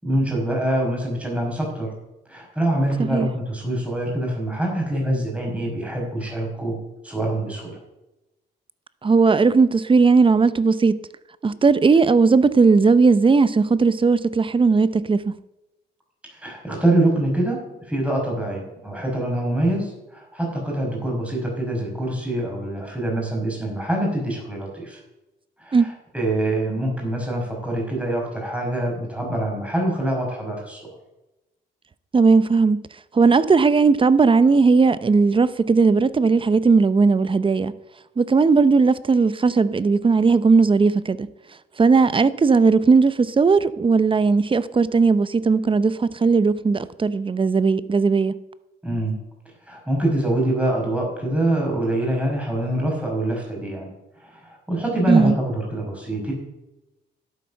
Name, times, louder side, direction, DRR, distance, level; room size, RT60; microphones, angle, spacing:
voice 1, 0.0-1.9 2.3-6.8 7.0-7.7 16.3-25.0 25.6-30.9 48.8-49.2 49.7-53.9 54.2-56.3, right 1 dB, 5° right, 5.8 m, -25 dB
voice 2, 9.0-11.0 11.4-15.3 25.7-25.9 32.1-32.8 33.1-37.7 38.2-41.3 41.8-48.4 55.1-55.3, right 4 dB, 25° right, 0.7 m, -17 dB
11.5 x 8.8 x 6.4 m
cardioid pair, 90°, 20 cm